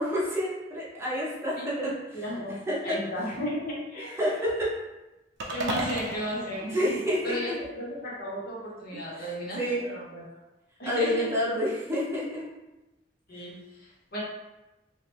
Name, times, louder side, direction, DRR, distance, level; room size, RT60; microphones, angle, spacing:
voice 1, 0.0-1.9 2.7-3.0 4.2-4.7 6.7-7.6 9.1-9.3 9.6-9.9 10.8-12.5, equal, 15° right, -6 dB, 0.6 m, -28 dB
voice 2, 1.6-2.5 2.8-4.1 5.5-10.2 10.8-11.3 13.3-14.2, equal, 55° left, -5 dB, 1.0 m, -35 dB
sound 1, 5.4-7.7, right 2 dB, 75° right, 0.6 m, -35 dB
3.1 x 2.3 x 3.3 m, 1.0 s
head